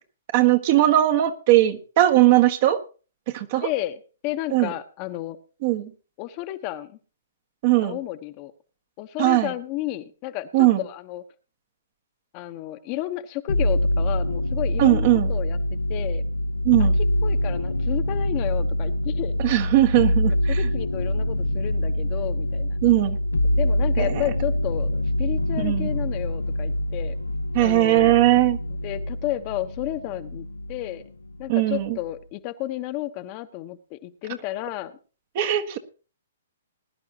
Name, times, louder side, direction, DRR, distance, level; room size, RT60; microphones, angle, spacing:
voice 1, 0.3-2.8 3.3-3.7 4.5-4.7 5.6-5.9 7.6-8.0 9.2-9.5 10.5-10.8 14.8-15.3 16.6-17.0 19.4-20.6 22.8-23.2 24.0-24.2 25.6-25.9 27.5-28.6 31.5-32.0 35.3-35.8, right 15 dB, 45° right, 6 dB, 1.4 m, -19 dB
voice 2, 3.6-5.4 6.2-6.9 7.8-8.5 9.0-11.2 12.3-16.2 16.8-16.9 17.2-19.4 20.5-22.8 23.5-27.1 27.6-28.4 28.7-31.0 31.4-35.0, left 15 dB, 35° left, 8 dB, 1.1 m, -32 dB
sound 1, 13.5-30.9 31.2-32.0, left 1 dB, 80° left, 0.8 m, -25 dB
20.5 x 10.5 x 2.9 m, 0.35 s
figure-of-eight pair, 125°, 0 cm